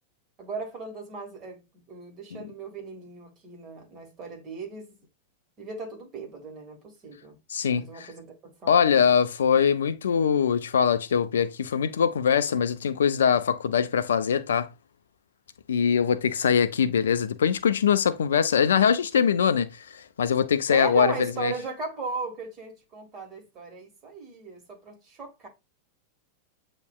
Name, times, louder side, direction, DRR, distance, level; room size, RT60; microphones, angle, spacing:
voice 1, 0.4-5.0 5.6-7.4 7.8-8.9 20.7-25.5, right 3 dB, 30° right, 1.8 m, -37 dB
voice 2, 7.5-8.1 8.7-14.7 15.7-21.1 21.4-21.5, left 7 dB, 65° left, 0.3 m, -22 dB
8.1 x 2.9 x 2.3 m
figure-of-eight pair, 90°, 0 cm